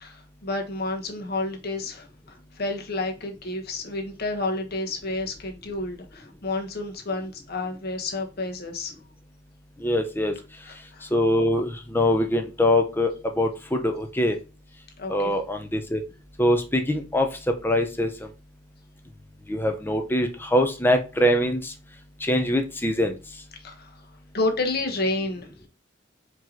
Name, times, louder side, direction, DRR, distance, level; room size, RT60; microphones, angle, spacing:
voice 1, 0.0-2.1 2.6-8.9 10.6-11.1 15.0-15.3 23.6-23.9 24.3-25.5, left 2 dB, 55° left, 1.1 m, -30 dB
voice 2, 9.8-10.3 11.1-14.4 15.1-16.0 16.4-17.3 17.6-18.1 19.5-21.7 22.2-23.1, left 1 dB, 10° left, 0.7 m, -23 dB
4.6 x 2.9 x 3.8 m
head